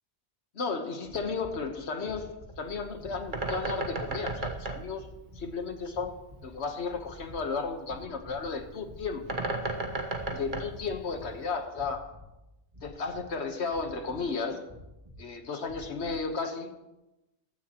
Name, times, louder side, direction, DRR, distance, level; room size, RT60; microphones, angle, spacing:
voice 1, 0.5-5.1 5.3-6.2 6.4-9.3 10.3-12.1 12.8-14.7 15.2-16.8, left 4 dB, 70° left, 6 dB, 1.5 m, -34 dB
sound 1, 1.0-1.6 2.0-2.6 3.0-3.6 3.9-4.5 4.9-5.5 5.9-6.6 6.8-7.5 7.8-8.5 8.8-9.4 9.8-10.4 10.7-11.3 11.7-12.3 12.7-13.3 13.7-14.3 14.7-15.2 15.6-16.2, left 1 dB, 25° right, 2.7 m, -49 dB
Bird, 2.5-11.6, right 2 dB, 45° right, 1.4 m, -37 dB
15.0 x 13.5 x 3.0 m, 0.97 s
omnidirectional pair, 1.2 m